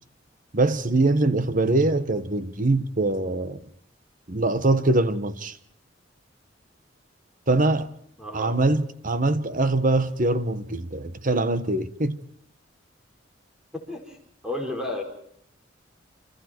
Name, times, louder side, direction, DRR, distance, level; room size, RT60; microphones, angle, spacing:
voice 1, 0.5-3.6 4.3-5.6 7.5-7.9 8.3-12.2, right 2 dB, 45° right, 1.3 m, -23 dB
voice 2, 8.2-8.6 13.7-14.2 14.4-15.0, left 1 dB, 5° right, 5.2 m, -32 dB
29.0 x 27.0 x 4.6 m
head